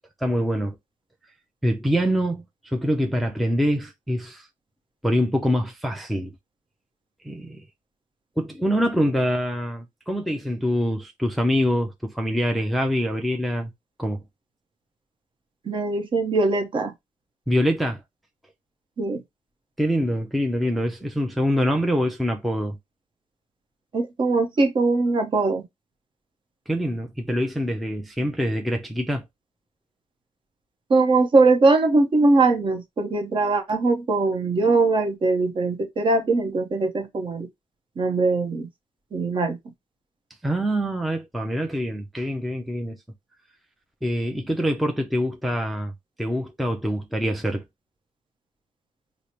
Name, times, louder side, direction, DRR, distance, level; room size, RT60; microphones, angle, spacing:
voice 1, 0.2-0.7 1.6-4.5 5.0-6.3 7.2-7.6 8.4-13.7 14.0-14.2 17.5-18.0 19.8-22.8 26.7-29.3 40.4-43.0 44.0-45.9 46.2-47.6, equal, ahead, 0.4 m, -25 dB
voice 2, 15.6-16.9 19.0-19.2 23.9-25.6 30.9-37.5 38.0-38.7 39.1-39.6, right 3 dB, 40° right, 0.8 m, -21 dB
4.8 x 2.0 x 2.8 m
cardioid pair, 125°, 13 cm